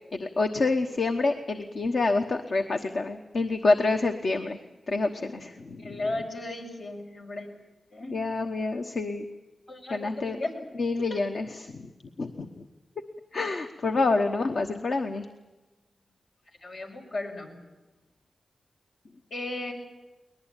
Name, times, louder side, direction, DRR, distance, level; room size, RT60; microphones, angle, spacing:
voice 1, 0.1-4.6 4.9-6.0 8.1-9.3 9.9-10.4 10.8-11.9 12.2-12.6 13.3-15.3, left 3 dB, 70° left, 4 dB, 1.1 m, -27 dB
voice 2, 5.8-7.5 7.9-8.2 9.7-10.5 11.0-11.2 16.6-17.5 19.3-19.7, left 2 dB, 90° left, -1 dB, 5.3 m, -35 dB
22.5 x 20.0 x 9.0 m, 1.1 s
cardioid pair, 50°, 0 cm